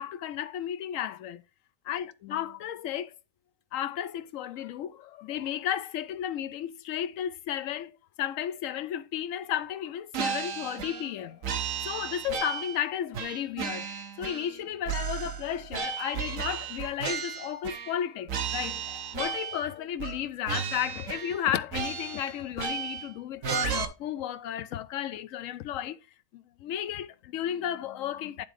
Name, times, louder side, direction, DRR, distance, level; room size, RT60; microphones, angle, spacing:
voice 1, 0.0-1.4 1.9-3.1 3.7-7.9 8.2-11.4 11.8-13.9 14.2-26.0 26.3-28.5, left 10 dB, 90° left, 1.0 m, -33 dB
sound 1, 10.1-11.1 11.4-12.8 13.1-14.6 14.8-18.0 18.3-19.7 20.0-20.2 20.5-21.4 21.7-23.1 23.4-23.8, right 7 dB, 80° right, 1.3 m, -34 dB
10.5 x 3.6 x 5.0 m
omnidirectional pair, 1.3 m